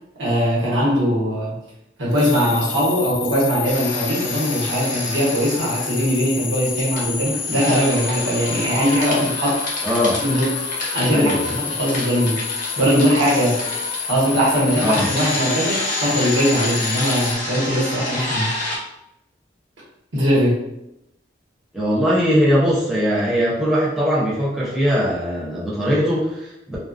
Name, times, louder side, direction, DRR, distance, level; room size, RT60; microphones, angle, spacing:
voice 1, 0.2-1.5 2.0-9.6 10.2-10.6 10.9-12.4 12.8-13.6 14.1-18.5 20.1-20.6, equal, 90° right, -6 dB, 1.0 m, -20 dB
sound 1, 2.1-17.3, left 6 dB, 85° left, 0.4 m, -29 dB
sound 2, 3.6-6.2 6.5-18.8, left 1 dB, 45° left, 0.7 m, -29 dB
voice 2, 9.8-10.2 11.1-11.5 14.8-15.1 21.7-26.8, equal, ahead, -8 dB, 0.6 m, -20 dB
2.3 x 2.2 x 2.4 m, 0.85 s
head